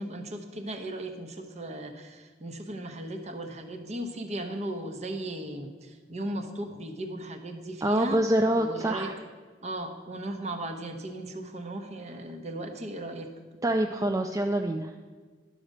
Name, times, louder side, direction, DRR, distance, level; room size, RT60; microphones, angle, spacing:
voice 1, 0.0-8.2 8.5-9.1 9.6-13.3, right 1 dB, 40° right, 6 dB, 0.9 m, -36 dB
voice 2, 7.8-9.1 13.6-14.9, right 1 dB, 20° right, 4 dB, 0.4 m, -26 dB
11.0 x 5.0 x 6.5 m, 1.5 s
head